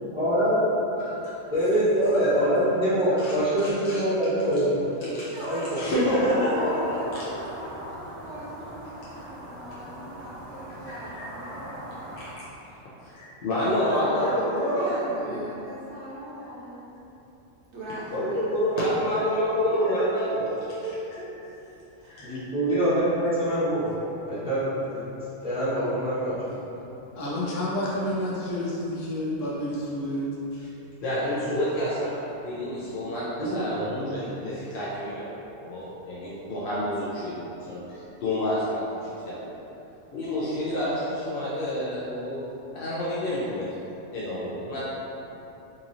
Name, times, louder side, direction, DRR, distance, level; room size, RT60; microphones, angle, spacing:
voice 1, 0.1-0.6 1.5-4.7 5.4-5.8 22.2-25.0 25.4-26.5 33.4-34.3, equal, 5° right, -14 dB, 1.1 m, -25 dB
voice 2, 1.0-1.3 2.1-2.3 3.1-4.0 4.4-4.5 5.0-5.3 5.7-6.7 7.1-7.2 9.0-9.3 10.8-11.3 12.2-12.5 13.0-15.4 18.1-20.6 22.1-22.3 30.5-30.7 31.0-35.3 35.6-39.5 40.1-42.4 42.7-43.7 44.1-44.8, equal, 55° left, -9 dB, 0.7 m, -28 dB
voice 3, 4.9-12.0 13.6-16.9 17.7-19.1 20.8-21.3 22.0-22.2, right 1 dB, 65° right, -6 dB, 1.1 m, -39 dB
sound 1, 5.9-12.4, right 1 dB, 90° right, 1.6 m, -41 dB
voice 4, 27.1-30.3, left 1 dB, 80° left, -6 dB, 1.1 m, -29 dB
4.1 x 2.9 x 2.6 m, 3.0 s
omnidirectional pair, 1.3 m